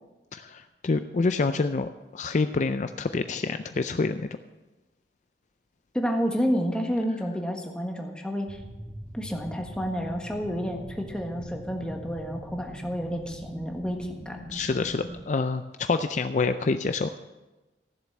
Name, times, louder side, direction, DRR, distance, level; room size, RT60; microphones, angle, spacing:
voice 1, 0.3-4.3 14.5-17.2, left 3 dB, 45° left, 9 dB, 0.4 m, -27 dB
voice 2, 5.9-8.6 9.1-14.4, equal, 5° left, 2 dB, 1.5 m, -30 dB
sound 1, 8.5-15.2, right 1 dB, 15° right, 1.5 m, -42 dB
14.5 x 7.4 x 7.3 m, 1.1 s
head